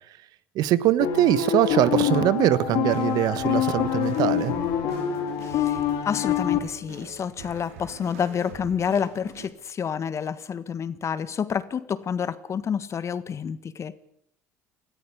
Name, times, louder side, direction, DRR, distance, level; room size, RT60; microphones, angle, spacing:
voice 1, 0.5-4.5, right 13 dB, 65° right, 16 dB, 1.2 m, -22 dB
sound 1, 1.0-6.6, left 10 dB, 70° left, 4.2 m, -25 dB
sound 2, 2.6-9.5, right 5 dB, 90° right, 3.6 m, -45 dB
voice 2, 5.4-14.0, left 7 dB, 40° left, 15 dB, 1.6 m, -29 dB
19.5 x 14.0 x 9.9 m, 0.75 s
hypercardioid pair, 75°, 7 cm